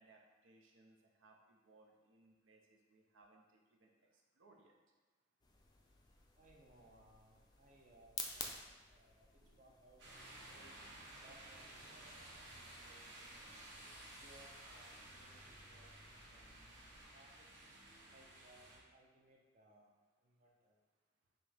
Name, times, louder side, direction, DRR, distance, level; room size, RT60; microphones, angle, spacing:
voice 1, 0.0-4.8 9.4-9.6, right 2 dB, 90° right, 0 dB, 0.6 m, -68 dB
sound 1, 5.4-17.0, left 4 dB, 20° left, 0.3 m, -54 dB
voice 2, 6.3-8.6 8.9-10.8 11.2-13.7 14.1-16.5 17.1-17.8 18.1-20.0 20.2-20.8, right 1 dB, 40° right, -1 dB, 0.4 m, -66 dB
sound 2, 10.0-18.8, right 1 dB, 65° right, 1.1 m, -55 dB
5.8 x 2.0 x 3.3 m, 1.3 s
head